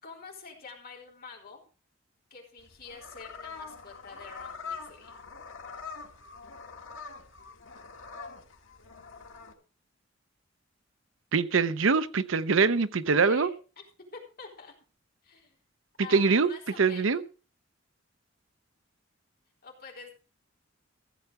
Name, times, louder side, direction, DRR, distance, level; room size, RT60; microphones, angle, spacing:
voice 1, 0.0-1.6 2.3-5.2 13.2-13.8 14.1-14.7 15.2-15.6 16.0-17.2 19.6-20.1, left 5 dB, 50° left, 3.8 m, -47 dB
sound 1, 2.6-9.5, left 5 dB, 90° left, 2.1 m, -44 dB
voice 2, 11.3-13.5 16.1-16.5 16.8-17.2, right 4 dB, 85° right, 0.7 m, -23 dB
15.5 x 7.8 x 4.8 m
head